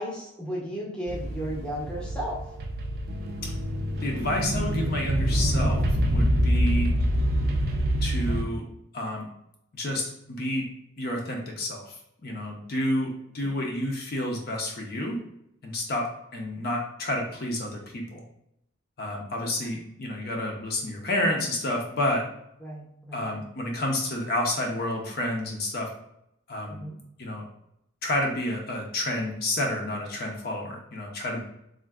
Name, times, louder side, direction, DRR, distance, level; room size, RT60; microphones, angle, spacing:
voice 1, 0.0-2.4 22.6-23.3 26.8-26.9, equal, 5° left, -4 dB, 0.6 m, -34 dB
sound 1, 1.1-8.4, equal, 45° right, 0.4 m, -26 dB
voice 2, 4.0-5.8 6.1-6.9 8.0-8.6 8.9-9.3 9.7-10.6 11.0-13.1 13.3-15.2 15.6-16.1 16.3-18.2 19.0-22.2 23.1-25.9 26.5-26.8 27.2-27.4 28.0-31.4, left 1 dB, 45° left, 0 dB, 0.5 m, -29 dB
3.5 x 2.5 x 2.3 m, 0.79 s
head